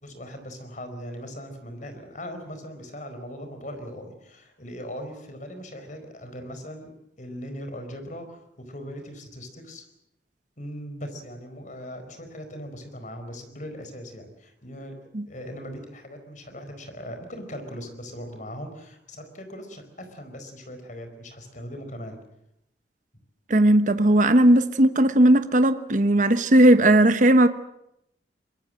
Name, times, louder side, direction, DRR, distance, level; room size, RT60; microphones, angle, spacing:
voice 1, 0.0-6.9 7.2-9.8 10.6-15.0 15.3-22.2, equal, 45° left, 4.5 m, -39 dB
voice 2, 23.5-27.5, right 1 dB, 45° right, 1.1 m, -17 dB
23.5 x 22.0 x 7.6 m
head